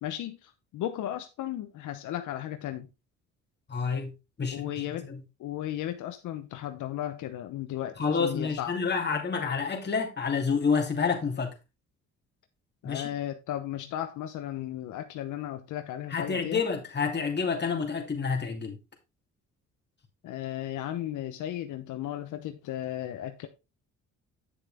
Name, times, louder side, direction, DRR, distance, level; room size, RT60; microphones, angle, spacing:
voice 1, 0.0-2.9 4.5-5.1 5.4-8.7 12.8-16.6 20.2-23.5, left 12 dB, 85° left, 1.0 m, -35 dB
voice 2, 3.7-4.1 4.4-5.2 8.0-11.5 12.8-13.1 16.1-18.8, left 5 dB, 35° left, 2.8 m, -29 dB
9.1 x 6.7 x 3.6 m
cardioid pair, 90°, 30 cm